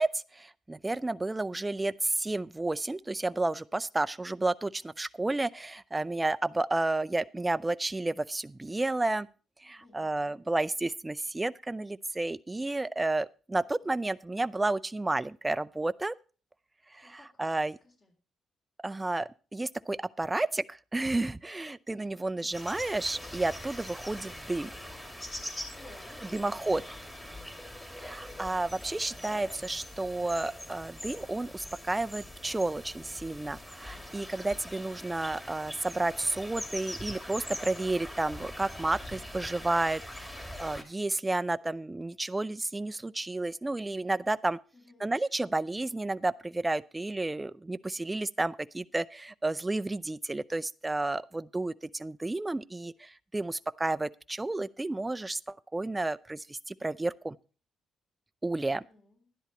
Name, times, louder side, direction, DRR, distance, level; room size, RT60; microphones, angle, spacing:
voice 1, 0.0-9.3 9.6-16.1 16.9-17.8 18.8-24.7 26.3-26.8 27.9-44.6 45.0-57.4 58.4-58.8, right 2 dB, 15° right, 0.5 m, -31 dB
voice 2, 9.8-10.4 17.0-18.1 25.7-26.9 44.7-45.2 58.7-59.3, left 2 dB, 35° left, 3.7 m, -57 dB
sound 1, 22.5-40.8, left 1 dB, 15° left, 2.5 m, -43 dB
12.5 x 10.5 x 4.3 m
cardioid pair, 90°, 0 cm